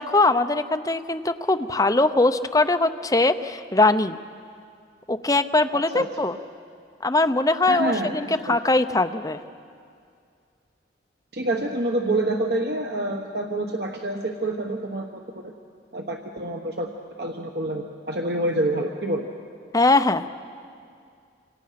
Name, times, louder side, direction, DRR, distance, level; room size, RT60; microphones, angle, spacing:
voice 1, 0.0-4.2 5.1-6.4 7.0-9.4 19.7-20.3, left 2 dB, 20° left, 8 dB, 0.7 m, -21 dB
voice 2, 7.7-8.6 11.3-15.5 15.9-16.9 17.2-19.3, right 1 dB, 60° right, 2 dB, 1.3 m, -27 dB
26.5 x 26.0 x 5.9 m, 2.3 s
head